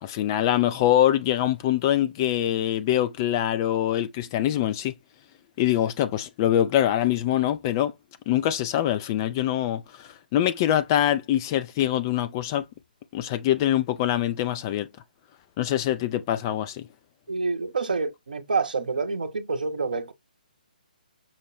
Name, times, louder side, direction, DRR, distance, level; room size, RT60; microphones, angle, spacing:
voice 1, 0.0-4.9 5.6-7.9 8.3-12.6 13.1-14.9 15.6-16.9, left 12 dB, 25° left, 0.3 m, -24 dB
voice 2, 17.3-20.1, right 4 dB, 65° right, 0.7 m, -27 dB
5.6 x 2.2 x 3.0 m
figure-of-eight pair, 135°, 5 cm